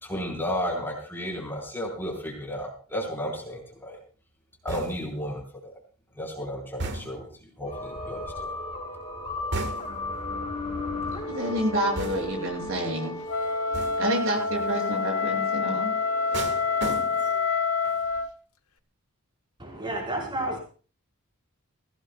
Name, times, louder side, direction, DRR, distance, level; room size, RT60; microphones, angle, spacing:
voice 1, 0.0-4.0 4.6-5.4 6.2-7.3 7.6-8.5, equal, 10° left, 4.5 m, -33 dB
sound 1, 4.7-5.2 6.8-7.4 9.5-10.1 12.0-12.5 13.7-14.2 16.3-17.5 17.8-18.2, right 2 dB, 50° right, 1.6 m, -35 dB
sound 2, 7.7-17.4, left 2 dB, 25° left, 5.5 m, -36 dB
voice 2, 11.3-13.2 14.0-16.4, right 1 dB, 65° right, 7.0 m, -29 dB
Wind instrument woodwind instrument, 13.3-18.3, left 5 dB, 75° left, 1.2 m, -27 dB
voice 3, 19.6-20.6, right 1 dB, 20° right, 4.8 m, -31 dB
22.5 x 16.5 x 2.3 m
head